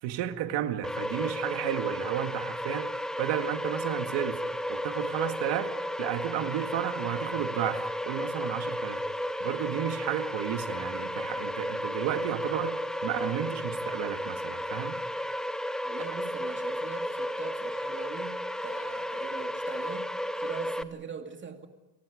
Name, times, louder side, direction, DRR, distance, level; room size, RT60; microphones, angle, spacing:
voice 1, 0.0-2.9 3.2-4.4 4.7-9.0 9.4-15.0, right 11 dB, 85° right, 2.0 m, -33 dB
sound 1, 0.8-20.8, equal, ahead, 0.7 m, -33 dB
voice 2, 15.8-21.7, right 5 dB, 25° right, 2.5 m, -42 dB
29.5 x 23.0 x 5.1 m
cardioid pair, 150°, 41 cm